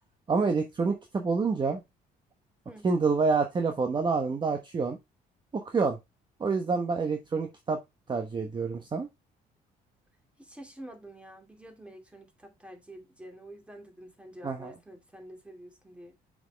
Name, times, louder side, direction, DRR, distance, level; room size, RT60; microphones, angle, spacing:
voice 1, 0.3-1.8 2.8-5.0 5.5-6.0 6.4-7.8 8.1-9.1 14.4-14.7, right 4 dB, 25° right, 1.1 m, -27 dB
voice 2, 10.4-16.1, right 1 dB, 5° right, 2.6 m, -48 dB
6.3 x 6.0 x 3.4 m
cardioid pair, 110°, 17 cm